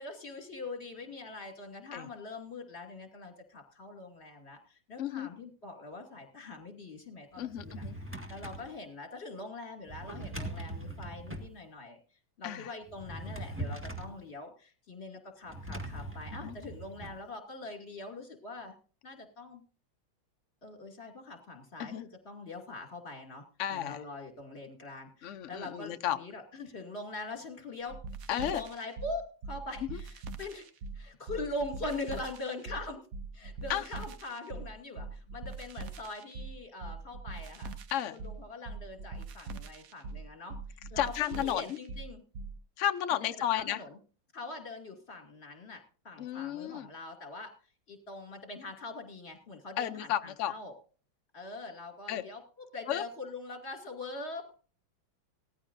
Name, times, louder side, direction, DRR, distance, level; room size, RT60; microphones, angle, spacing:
voice 1, 0.0-7.8 8.3-12.0 12.4-18.7 19.0-19.6 20.6-23.4 23.7-28.0 28.3-30.7 30.9-33.1 33.3-37.7 38.1-42.2 43.1-43.2 43.5-44.0 44.3-47.5 47.9-50.7 51.3-54.5, left 2 dB, 30° left, 3 dB, 2.8 m, -43 dB
voice 2, 5.0-5.3 7.4-7.9 12.4-12.7 16.4-16.5 21.8-22.0 23.6-24.0 25.2-26.2 28.3-28.6 33.7-33.8 37.9-38.2 41.0-41.6 42.8-43.8 46.2-46.9 49.8-50.5 52.1-52.2 52.9-53.0, left 11 dB, 90° left, 10 dB, 0.6 m, -32 dB
Drawer open or close, 7.4-8.7 9.9-11.5 12.9-14.2 15.5-17.2, right 1 dB, 5° right, 1.6 m, -41 dB
sound 1, 27.9-42.6, right 3 dB, 60° right, 1.0 m, -42 dB
18.0 x 14.0 x 2.6 m, 0.40 s
omnidirectional pair, 2.2 m